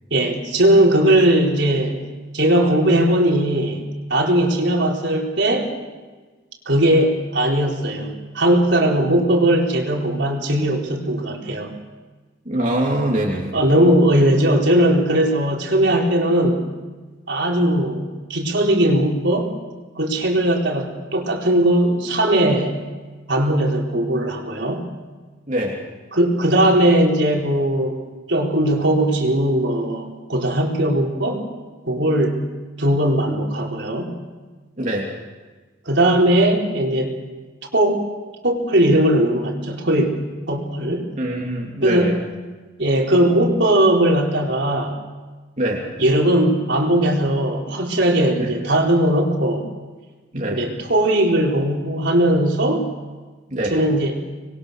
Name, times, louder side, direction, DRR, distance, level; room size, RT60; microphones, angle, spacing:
voice 1, 0.1-2.0 2.3-3.8 4.1-5.7 6.7-11.7 13.5-16.6 17.3-19.5 20.0-22.8 23.3-24.8 26.1-28.0 28.3-31.4 31.8-32.4 32.8-34.1 35.9-37.2 37.7-38.0 38.4-40.2 40.5-41.1 41.8-42.1 42.8-44.9 46.0-49.6 50.5-52.9 53.7-54.2, right 1 dB, 70° right, 0 dB, 4.2 m, -18 dB
voice 2, 12.4-13.5 25.5-25.8 34.8-35.1 41.2-42.2 45.6-45.8 48.4-48.5 50.3-50.6 53.5-53.8, right 1 dB, 40° right, -3 dB, 3.2 m, -23 dB
26.0 x 22.0 x 6.6 m, 1.3 s
head